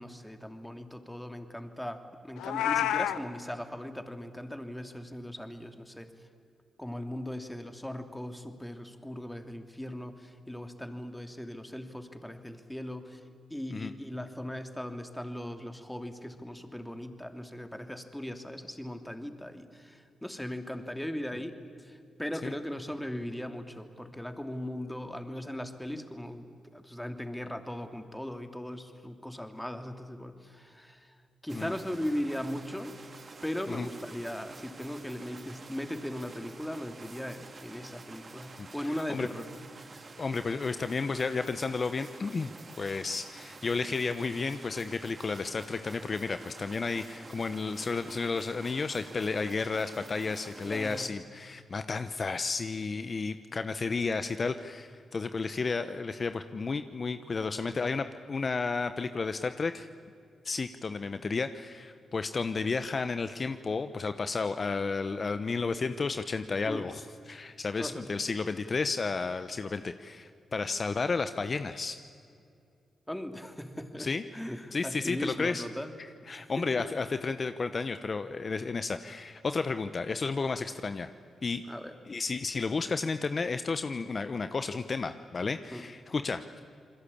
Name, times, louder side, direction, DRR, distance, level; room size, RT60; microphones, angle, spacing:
voice 1, 0.0-6.1 6.8-13.2 13.5-21.6 21.8-26.4 26.7-31.1 31.4-33.0 33.4-39.5 50.6-51.1 66.6-66.9 67.8-68.1 73.1-75.9 76.3-76.8 81.7-81.9 85.7-85.9, left 1 dB, 5° left, 6 dB, 2.8 m, -38 dB
Meow, 2.4-3.2, left 11 dB, 90° left, 0.8 m, -28 dB
sound 1, 31.5-51.1, right 3 dB, 50° right, 2.7 m, -49 dB
voice 2, 38.6-39.3 40.2-42.5 42.8-59.9 60.4-72.0 74.0-74.2 74.7-75.6 76.3-81.1 81.4-81.6 82.1-86.6, left 4 dB, 50° left, 10 dB, 0.9 m, -32 dB
28.0 x 21.5 x 8.6 m, 2.4 s
supercardioid pair, 45°, 0 cm